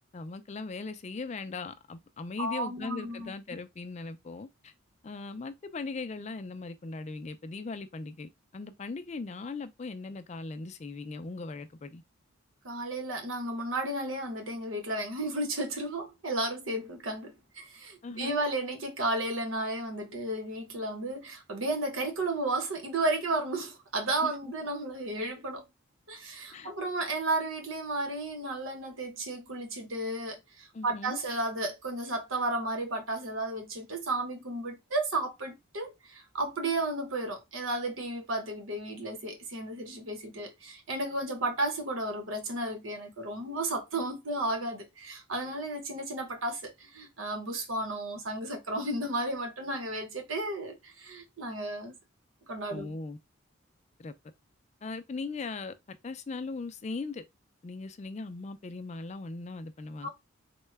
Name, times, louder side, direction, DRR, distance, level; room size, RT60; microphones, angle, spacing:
voice 1, 0.1-4.7 5.0-12.0 18.0-18.4 24.2-24.3 26.5-26.7 30.7-31.2 52.7-53.2 54.0-54.1 54.8-57.2 57.6-60.1, left 3 dB, 35° left, 0.4 m, -39 dB
voice 2, 2.4-3.3 12.6-25.6 26.1-51.9 52.5-52.9 60.0-60.1, right 2 dB, 80° right, 1.0 m, -33 dB
3.7 x 2.2 x 3.2 m
head